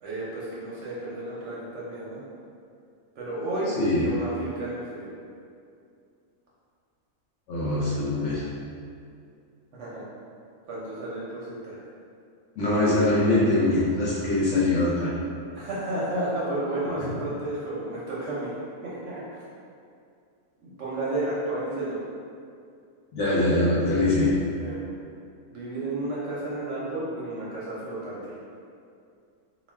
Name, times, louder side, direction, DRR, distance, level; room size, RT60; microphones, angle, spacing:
voice 1, 0.0-2.2 3.2-5.1 9.7-10.0 10.7-11.8 15.5-18.5 18.8-19.2 20.6-22.0 24.6-24.9 25.5-28.3, right 2 dB, 65° right, -7 dB, 0.8 m, -32 dB
voice 2, 7.5-8.5 12.6-15.1 17.0-17.1 23.1-24.4, left 2 dB, 65° left, -7 dB, 0.8 m, -23 dB
2.4 x 2.2 x 3.3 m, 2.4 s
omnidirectional pair, 1.5 m